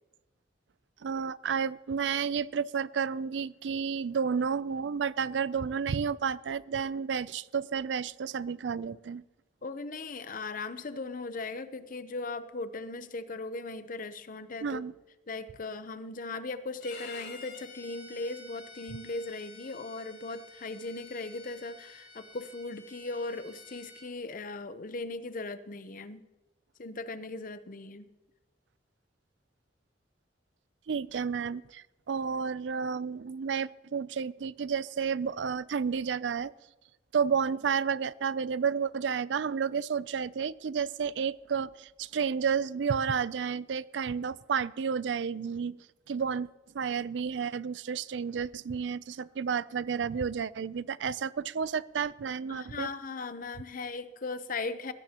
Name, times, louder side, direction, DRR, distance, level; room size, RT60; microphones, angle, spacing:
voice 1, 1.0-9.2 14.6-14.9 30.9-36.5 37.1-45.8 46.1-46.5 46.7-52.9, right 6 dB, 75° right, 19 dB, 0.4 m, -31 dB
voice 2, 9.6-14.8 15.3-26.2 26.8-28.1 52.5-54.9, left 3 dB, 50° left, 12 dB, 0.8 m, -38 dB
Bowed string instrument, 16.8-24.1, left 3 dB, 85° left, 4.8 m, -50 dB
20.5 x 16.0 x 2.9 m, 1.1 s
head